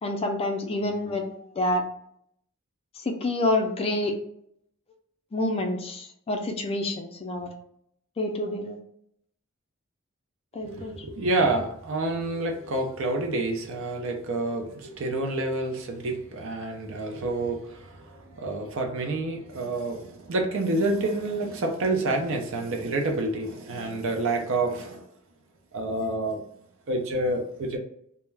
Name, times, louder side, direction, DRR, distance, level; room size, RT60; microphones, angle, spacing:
voice 1, 0.0-1.8 3.1-4.2 5.3-7.5 8.2-8.8 10.5-10.9, left 2 dB, 25° left, 4 dB, 0.4 m, -28 dB
voice 2, 10.6-25.1 25.7-26.4 26.9-27.8, right 2 dB, 65° right, 4 dB, 0.5 m, -28 dB
2.3 x 2.1 x 3.2 m, 0.71 s
head